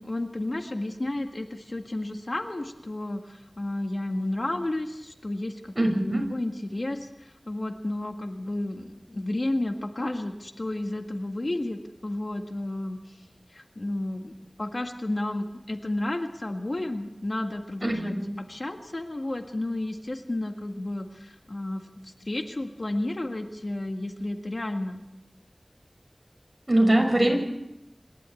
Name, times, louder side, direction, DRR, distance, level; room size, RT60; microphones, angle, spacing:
voice 1, 0.0-13.2 13.5-25.0, left 1 dB, 60° left, 5 dB, 1.8 m, -32 dB
voice 2, 5.7-6.2 17.8-18.3 26.7-27.4, right 1 dB, 35° right, 2 dB, 6.7 m, -22 dB
27.0 x 12.5 x 8.5 m, 0.92 s
wide cardioid pair, 45°, 0 cm